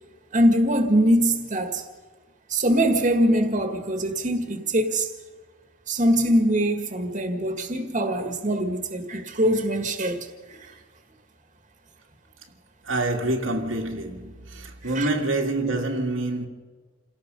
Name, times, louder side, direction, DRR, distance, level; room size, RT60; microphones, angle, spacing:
voice 1, 0.3-1.8 2.5-5.1 5.9-10.2 10.5-10.6 15.0-15.1, right 1 dB, 40° right, 1.9 m, -22 dB
voice 2, 12.8-16.5, right 2 dB, 85° right, 2.2 m, -26 dB
28.0 x 17.5 x 5.4 m
head